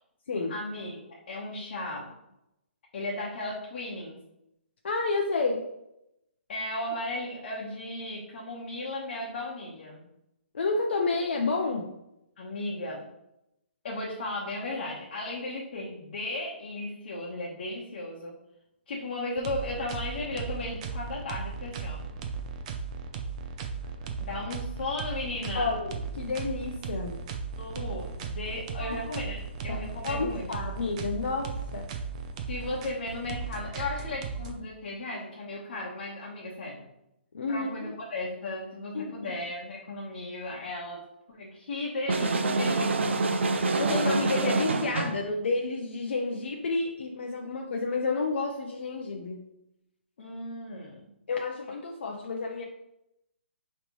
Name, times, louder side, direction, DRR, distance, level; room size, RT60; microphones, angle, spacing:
voice 1, 0.5-2.1 2.9-4.2 6.5-10.1 12.4-13.1 13.8-18.4 18.9-22.1 24.2-25.8 27.5-30.6 32.5-36.9 37.5-43.4 50.2-51.1, left 2 dB, 55° left, -5 dB, 1.1 m, -36 dB
voice 2, 4.8-5.6 10.5-11.9 25.5-27.1 28.8-28.9 30.0-31.9 37.3-37.9 38.9-39.1 43.8-49.4 51.3-52.6, left 3 dB, 70° left, 1 dB, 0.7 m, -30 dB
sound 1, 19.4-34.5, right 5 dB, 35° right, 0.5 m, -36 dB
sound 2, 42.1-45.2, right 3 dB, 75° right, 0.6 m, -26 dB
5.3 x 3.2 x 3.1 m, 0.85 s
hypercardioid pair, 150°, 6 cm